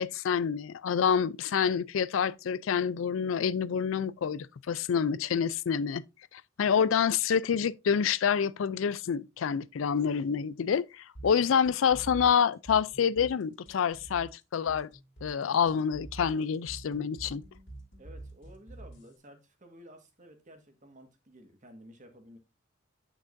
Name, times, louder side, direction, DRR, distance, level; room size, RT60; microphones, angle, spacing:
voice 1, 0.0-6.0 6.3-14.9 15.2-17.4, left 7 dB, 85° left, 0.4 m, -27 dB
voice 2, 6.6-6.9 11.2-11.5 18.0-22.4, equal, 40° right, 1.6 m, -53 dB
sound 1, 11.1-19.2, right 2 dB, 60° left, 2.3 m, -47 dB
8.8 x 6.0 x 2.6 m
head